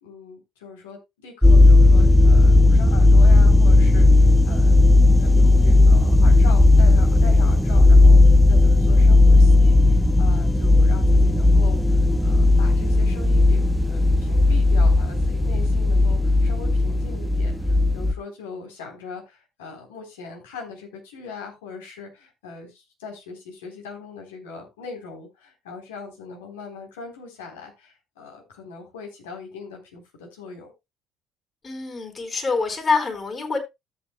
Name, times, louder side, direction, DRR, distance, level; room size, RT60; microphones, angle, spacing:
voice 1, 0.0-4.7 5.2-30.7, left 5 dB, 80° left, 3.7 m, -40 dB
sound 1, 1.4-18.1, left 2 dB, ahead, 1.0 m, -15 dB
voice 2, 31.6-33.6, left 4 dB, 35° left, 4.5 m, -25 dB
14.0 x 8.3 x 2.2 m
hypercardioid pair, 55°, 0 cm